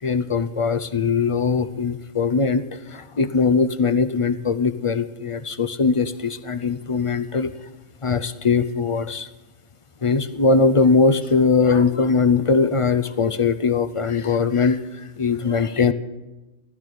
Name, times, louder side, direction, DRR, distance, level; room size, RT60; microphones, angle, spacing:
voice 1, 0.0-7.5 8.0-9.3 10.0-15.9, left 4 dB, 45° left, 11 dB, 0.4 m, -21 dB
16.0 x 12.0 x 6.7 m, 1.1 s
omnidirectional pair, 1.4 m